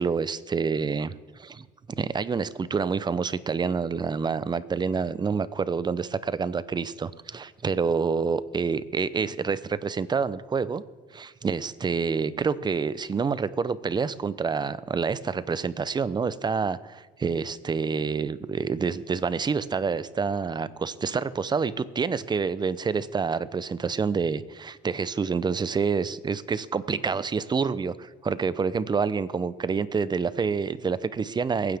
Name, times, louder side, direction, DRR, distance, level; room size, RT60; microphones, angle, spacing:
voice 1, 0.0-1.7 2.0-10.8 11.1-31.8, right 5 dB, 25° right, 16 dB, 0.6 m, -27 dB
22.5 x 9.6 x 3.6 m, 1.3 s
cardioid pair, 110°, 17 cm